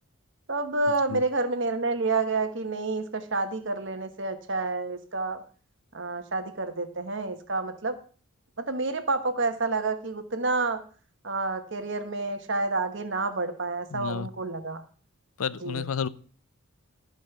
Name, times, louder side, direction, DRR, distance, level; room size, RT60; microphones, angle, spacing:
voice 1, 0.5-5.4 5.9-8.0 8.6-10.8 11.2-14.8 15.6-15.8, right 3 dB, 55° right, 8 dB, 1.2 m, -29 dB
voice 2, 13.9-14.3 15.4-16.1, left 6 dB, 75° left, 18 dB, 0.5 m, -31 dB
13.0 x 5.3 x 6.8 m, 0.42 s
head